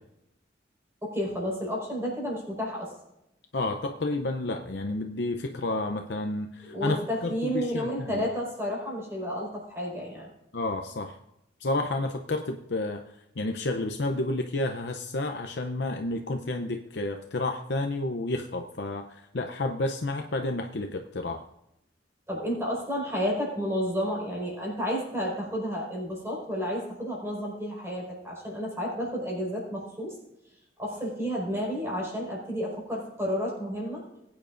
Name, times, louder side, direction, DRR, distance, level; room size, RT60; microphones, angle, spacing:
voice 1, 1.0-2.9 6.6-10.3 22.3-30.2 30.8-34.0, equal, 15° right, -3 dB, 4.9 m, -31 dB
voice 2, 3.5-7.0 7.2-8.2 10.5-11.2 11.6-13.0 13.4-21.5, left 2 dB, 65° left, 4 dB, 0.7 m, -30 dB
20.5 x 9.0 x 2.6 m, 0.86 s
head